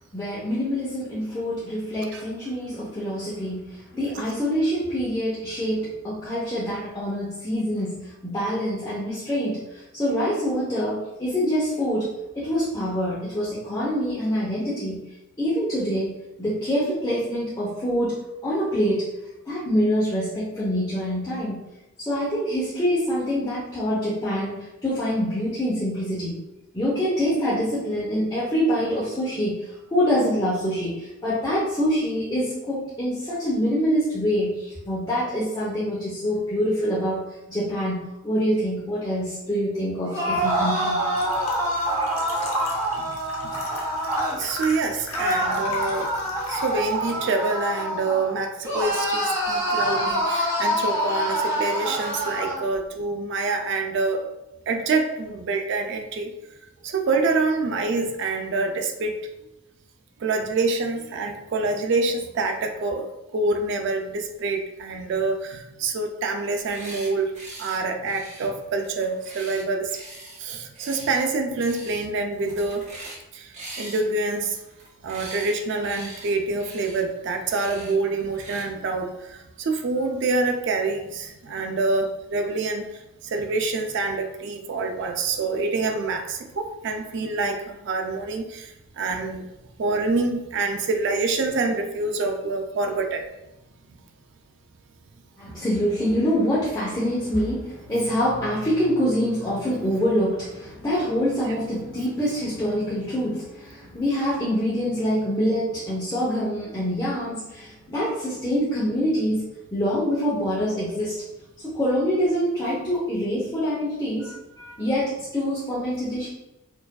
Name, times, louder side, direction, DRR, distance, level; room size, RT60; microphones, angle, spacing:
voice 1, 0.1-15.0 15.4-16.1 16.4-19.1 19.5-21.6 22.0-26.4 26.7-41.0 95.4-111.2 111.6-116.3, equal, 15° left, -10 dB, 0.7 m, -25 dB
sound 1, 40.0-44.4 45.1-48.3 48.6-52.6, equal, 15° right, 1.2 m, -26 dB
sound 2, 41.1-47.2, left 1 dB, 70° left, 0.7 m, -36 dB
voice 2, 43.0-43.7 44.4-46.1 46.5-54.2 54.7-56.3 56.8-59.1 60.2-67.3 67.6-70.0 70.4-72.9 73.3-74.6 75.0-89.5 89.8-93.3 95.5-95.6, right 3 dB, 50° right, 4 dB, 0.3 m, -26 dB
sound 3, 66.5-67.1 67.3-67.8 68.1-70.4 70.7-71.2 71.6-72.0 72.3-73.2 73.5-75.5 75.8-76.3 76.6-77.0 77.5-77.9 78.3-78.6, right 2 dB, 30° right, 0.7 m, -41 dB
4.5 x 2.5 x 2.2 m, 0.95 s
head